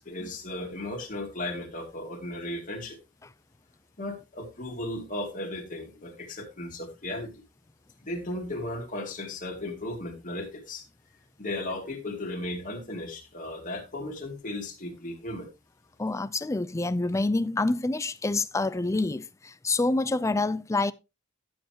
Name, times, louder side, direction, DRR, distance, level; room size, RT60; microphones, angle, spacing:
voice 1, 0.0-3.0 4.0-7.4 8.0-10.8 11.4-15.5, left 1 dB, 40° left, 2.4 m, -36 dB
voice 2, 16.0-20.9, left 2 dB, 15° left, 0.4 m, -27 dB
12.0 x 7.8 x 2.9 m
head